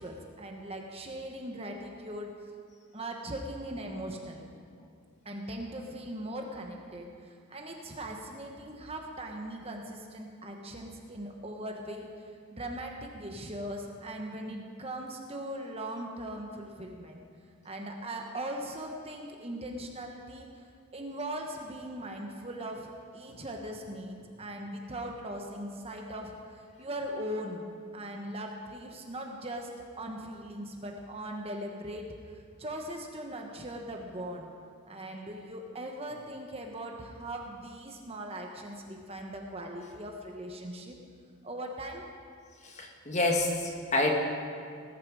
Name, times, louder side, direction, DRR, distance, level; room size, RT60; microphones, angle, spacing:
voice 1, 0.0-2.3 2.9-4.5 5.2-17.2 17.6-29.7 30.0-34.5 34.9-41.0 41.4-42.0, right 1 dB, 25° right, 2 dB, 1.2 m, -40 dB
voice 2, 42.6-44.1, left 2 dB, 30° left, 1 dB, 1.6 m, -28 dB
19.5 x 11.0 x 4.9 m, 2.2 s
head